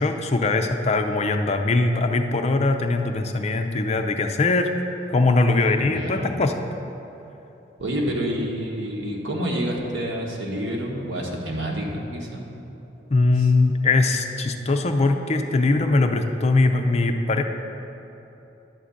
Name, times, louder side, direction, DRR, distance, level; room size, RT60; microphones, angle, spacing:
voice 1, 0.0-4.7 5.1-6.6 13.1-17.4, left 3 dB, 35° left, 5 dB, 0.4 m, -21 dB
voice 2, 5.8-6.4 7.8-12.5, equal, 80° right, -2 dB, 1.4 m, -28 dB
11.0 x 3.8 x 7.1 m, 3.0 s
head